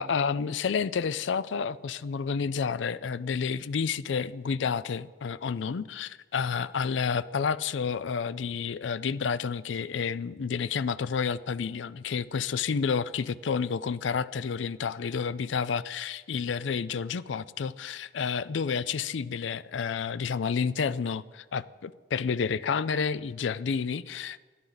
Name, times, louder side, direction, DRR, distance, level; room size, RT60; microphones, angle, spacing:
voice 1, 0.0-24.4, left 6 dB, 80° left, 0.4 m, -30 dB
21.0 x 12.5 x 4.0 m
head